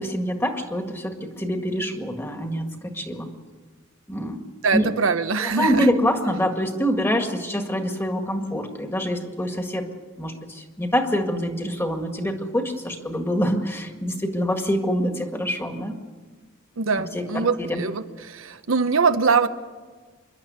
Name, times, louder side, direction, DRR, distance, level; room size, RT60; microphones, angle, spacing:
voice 1, 0.0-3.3 4.1-4.4 4.7-4.9 5.4-9.8 10.2-16.0 17.1-17.8, equal, 10° left, 5 dB, 1.9 m, -25 dB
voice 2, 4.6-5.9 16.8-19.5, right 5 dB, 75° right, 9 dB, 0.9 m, -22 dB
26.0 x 11.5 x 9.5 m, 1.4 s
head